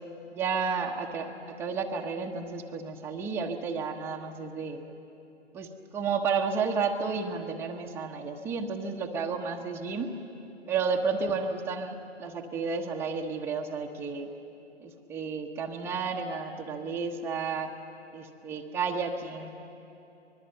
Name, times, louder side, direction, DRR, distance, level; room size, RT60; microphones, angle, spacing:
voice 1, 0.3-4.8 5.5-10.1 10.7-14.3 14.8-17.7 18.1-19.5, right 5 dB, 5° right, 0 dB, 1.0 m, -32 dB
25.0 x 21.0 x 7.8 m, 2.9 s
hypercardioid pair, 140°, 35 cm